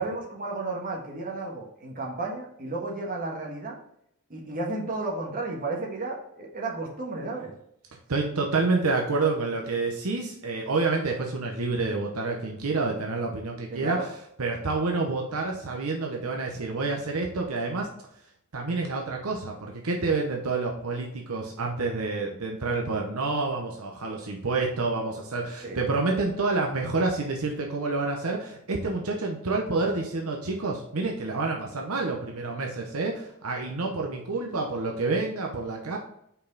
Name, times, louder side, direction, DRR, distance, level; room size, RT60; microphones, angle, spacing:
voice 1, 0.0-3.8 4.3-7.5 13.7-14.1 25.6-25.8, right 3 dB, 40° right, -1 dB, 1.5 m, -33 dB
voice 2, 8.1-14.0 14.4-17.9 18.5-36.0, right 3 dB, 75° right, 1 dB, 0.9 m, -28 dB
5.5 x 4.7 x 4.0 m, 0.74 s
head